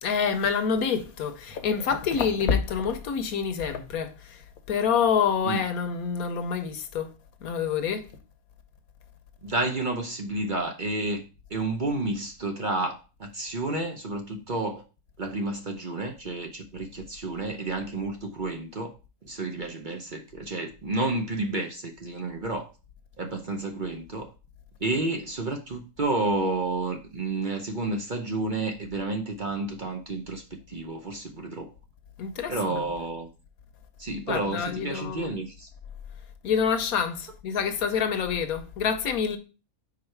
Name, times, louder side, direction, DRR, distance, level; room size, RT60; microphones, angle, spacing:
voice 1, 0.0-7.1 7.4-8.1 32.2-32.9 34.3-35.3 36.4-39.4, left 6 dB, 80° left, 1.3 m, -27 dB
voice 2, 9.4-14.8 15.2-18.9 19.2-22.7 23.2-24.3 24.8-31.7 32.5-33.3 34.0-35.7, right 2 dB, 45° right, 0.8 m, -30 dB
4.8 x 4.5 x 4.5 m
omnidirectional pair, 1.5 m